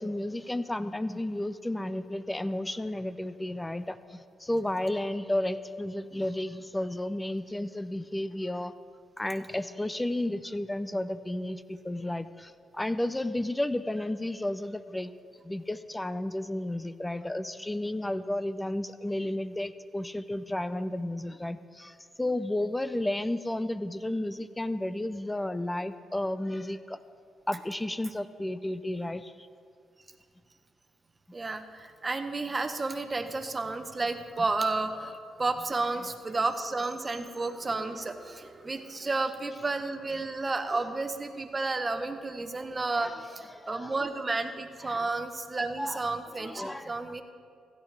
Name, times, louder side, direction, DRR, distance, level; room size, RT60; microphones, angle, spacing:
voice 1, 0.0-8.7 9.2-15.1 15.4-27.0 27.5-29.5 43.0-43.2 43.5-43.9 44.8-45.1 45.8-46.0 46.4-47.2, left 1 dB, 15° left, 13 dB, 0.5 m, -32 dB
voice 2, 31.3-35.1 35.4-47.2, right 3 dB, 30° right, 7 dB, 1.0 m, -32 dB
16.0 x 12.0 x 3.3 m, 2.2 s
supercardioid pair, 65°, 0 cm